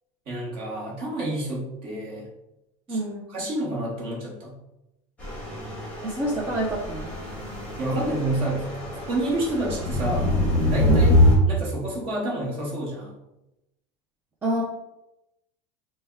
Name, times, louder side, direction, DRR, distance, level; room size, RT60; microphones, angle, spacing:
voice 1, 0.3-2.3 2.9-3.0 3.3-4.6 7.8-8.7 8.9-10.3 10.6-11.2 11.5-13.1, right 1 dB, 35° right, -3 dB, 1.0 m, -29 dB
voice 2, 2.9-3.2 6.0-7.1 10.9-11.2 14.4-14.6, right 1 dB, 15° right, -5 dB, 0.3 m, -27 dB
sound 1, 5.2-11.4, left 1 dB, 10° left, 1.0 m, -24 dB
3.3 x 2.1 x 3.3 m, 0.91 s
cardioid pair, 175°, 15 cm